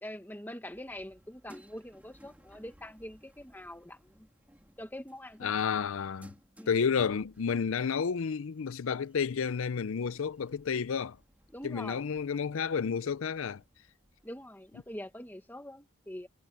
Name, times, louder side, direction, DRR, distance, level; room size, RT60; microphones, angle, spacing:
voice 1, 0.0-4.3 4.8-5.7 6.6-6.7 11.5-12.1 14.2-16.3, left 1 dB, 10° left, 1.5 m, -44 dB
sound 1, 0.7-15.5, equal, 5° right, 2.6 m, -61 dB
voice 2, 5.4-6.3 6.7-11.2 11.6-13.6, left 6 dB, 65° left, 0.5 m, -31 dB
head